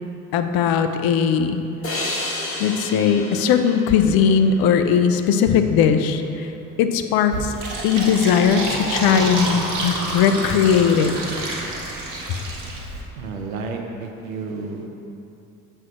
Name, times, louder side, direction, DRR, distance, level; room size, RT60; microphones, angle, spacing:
voice 1, 0.3-1.6 2.6-6.5 6.8-7.6 7.8-11.2, left 7 dB, 60° left, 8 dB, 0.6 m, -19 dB
sound 1, 1.8-5.1, left 1 dB, 30° left, 1.6 m, -31 dB
Fill (with liquid), 7.3-13.0, right 2 dB, 50° right, 1.6 m, -28 dB
voice 2, 13.2-14.9, right 4 dB, 85° right, 3 dB, 0.7 m, -31 dB
7.5 x 3.3 x 6.0 m, 2.7 s
hypercardioid pair, 55°, 41 cm